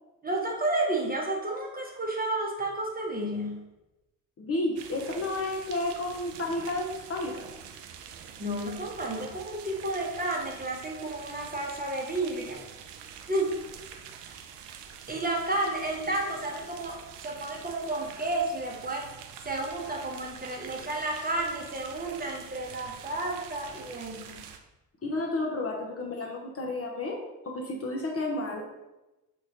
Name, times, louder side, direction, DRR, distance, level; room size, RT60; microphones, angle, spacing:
voice 1, 0.2-3.6 8.4-12.6 13.3-13.5 15.1-17.0 17.2-19.1 19.4-24.4, right 2 dB, 20° right, -1 dB, 0.9 m, -31 dB
voice 2, 4.4-7.5 25.0-27.2 27.4-28.7, left 2 dB, 30° left, 0 dB, 0.8 m, -31 dB
sound 1, 4.8-24.6, right 8 dB, 60° right, 0.6 m, -46 dB
4.3 x 3.6 x 2.8 m, 1.0 s
figure-of-eight pair, 40°, 49 cm